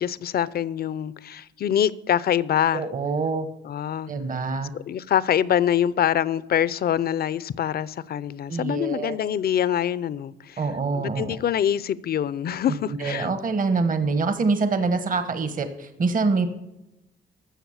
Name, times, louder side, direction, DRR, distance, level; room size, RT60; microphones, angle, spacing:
voice 1, 0.0-2.9 3.6-4.1 4.7-10.6 10.9-13.3, left 10 dB, 50° left, 0.6 m, -25 dB
voice 2, 2.7-3.5 4.1-4.7 8.5-9.2 10.6-11.4 12.9-16.5, right 4 dB, 45° right, 1.3 m, -25 dB
13.0 x 7.1 x 7.2 m
cardioid pair, 90°, 20 cm